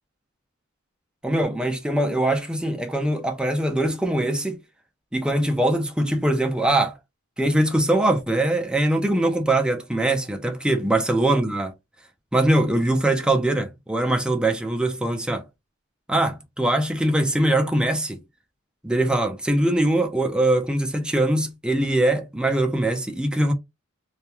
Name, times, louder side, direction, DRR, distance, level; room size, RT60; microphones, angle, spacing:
voice 1, 1.2-4.6 5.1-6.9 7.4-11.7 12.3-15.4 16.1-18.2 18.8-23.5, right 1 dB, 5° right, 0.4 m, -22 dB
2.3 x 2.1 x 2.9 m
head